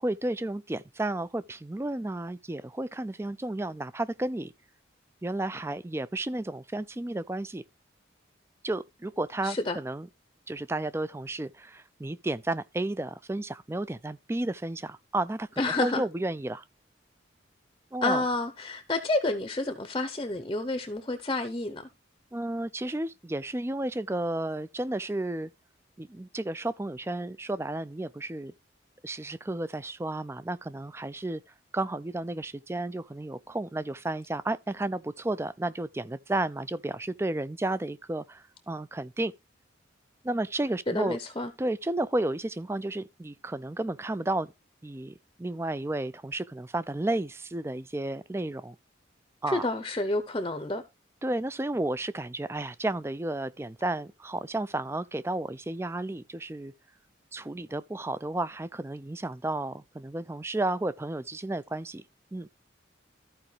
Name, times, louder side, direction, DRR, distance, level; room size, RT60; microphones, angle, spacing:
voice 1, 0.0-4.5 5.2-7.6 8.6-10.1 10.5-16.6 17.9-18.2 22.3-25.5 26.0-28.5 29.0-31.4 31.7-39.3 40.2-41.2 41.6-44.5 44.8-48.8 49.4-49.7 51.2-56.7 57.3-62.0 62.3-62.5, right 2 dB, 15° right, 0.4 m, -32 dB
voice 2, 9.4-9.8 15.6-16.0 18.0-21.9 40.9-41.5 49.5-50.8, left 2 dB, 25° left, 0.7 m, -29 dB
14.0 x 4.9 x 3.2 m
head